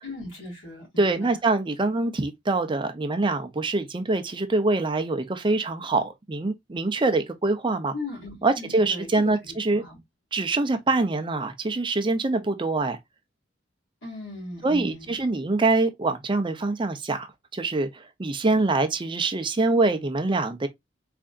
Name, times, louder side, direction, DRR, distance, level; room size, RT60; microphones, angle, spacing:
voice 1, 0.0-1.4 7.9-10.0 14.0-15.2, left 2 dB, 85° left, 2.1 m, -38 dB
voice 2, 1.0-7.9 8.4-9.8 10.3-13.0 14.6-20.7, right 3 dB, 25° right, 0.5 m, -24 dB
3.7 x 3.4 x 2.4 m
head